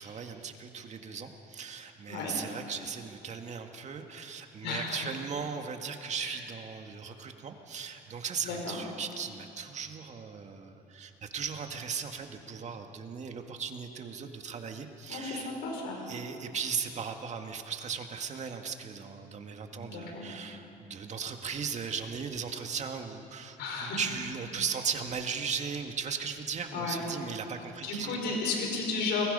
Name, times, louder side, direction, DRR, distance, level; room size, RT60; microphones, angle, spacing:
voice 1, 0.0-15.5 16.1-28.3, right 6 dB, 45° right, 5 dB, 2.0 m, -37 dB
voice 2, 4.6-5.0 6.2-6.4 8.4-8.8 15.1-16.0 19.7-20.2 23.6-24.0 26.7-27.0 27.8-29.2, left 4 dB, 90° left, 0 dB, 5.5 m, -33 dB
29.5 x 21.5 x 5.6 m, 2.8 s
cardioid pair, 110°, 17 cm